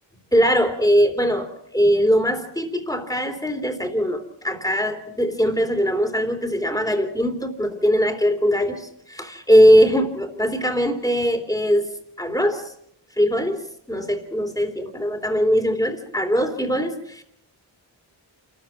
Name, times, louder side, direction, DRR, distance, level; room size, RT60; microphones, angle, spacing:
voice 1, 0.3-11.9 12.2-12.7 13.2-13.6 13.9-17.2, equal, 10° left, 7 dB, 3.4 m, -21 dB
28.0 x 14.0 x 7.4 m, 0.72 s
wide cardioid pair, 80°, 46 cm